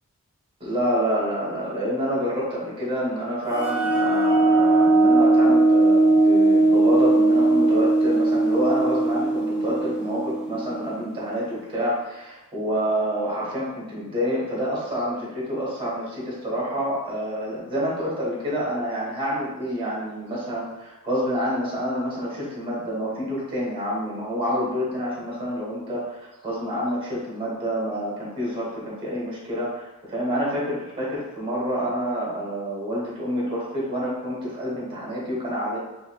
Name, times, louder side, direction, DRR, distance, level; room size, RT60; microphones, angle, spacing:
voice 1, 0.6-35.8, equal, 25° right, -6 dB, 1.4 m, -28 dB
sound 1, 3.5-11.0, right 2 dB, 5° right, 0.6 m, -19 dB
4.5 x 3.4 x 2.3 m, 0.98 s
head